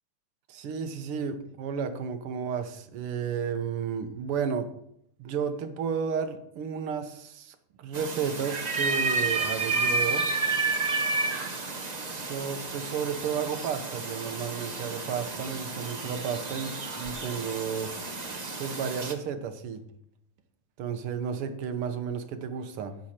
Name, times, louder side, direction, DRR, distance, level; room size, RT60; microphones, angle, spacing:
voice 1, 0.5-4.7 5.2-10.3 11.9-17.9 18.6-19.8 20.8-23.0, right 7 dB, 80° right, 9 dB, 1.9 m, -32 dB
sound 1, 7.9-19.1, right 3 dB, 35° right, 0.7 m, -31 dB
12.5 x 8.7 x 4.4 m, 0.74 s
omnidirectional pair, 2.4 m